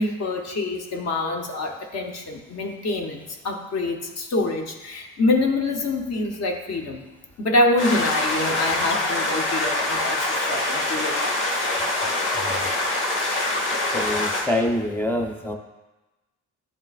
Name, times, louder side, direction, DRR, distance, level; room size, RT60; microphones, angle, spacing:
voice 1, 0.0-7.0 7.4-11.6, left 2 dB, 60° left, 2 dB, 0.9 m, -26 dB
sound 1, 7.8-14.4, left 2 dB, 80° left, 1.5 m, -24 dB
voice 2, 13.9-15.5, left 1 dB, 5° left, 2 dB, 0.8 m, -26 dB
11.0 x 3.7 x 2.4 m, 1.1 s
cardioid pair, 90°, 30 cm